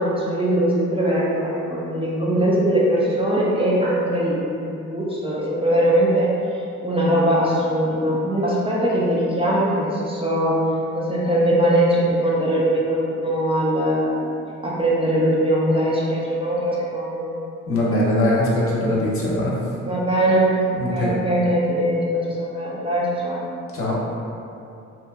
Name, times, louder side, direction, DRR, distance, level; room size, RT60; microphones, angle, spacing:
voice 1, 0.0-10.5 10.9-14.2 14.6-17.3 19.8-23.4, right 1 dB, 20° right, -6 dB, 0.5 m, -21 dB
voice 2, 17.7-19.5 20.8-21.1 23.7-24.0, left 1 dB, 45° left, -5 dB, 0.8 m, -21 dB
2.8 x 2.2 x 3.5 m, 2.6 s
cardioid pair, 90°, 30 cm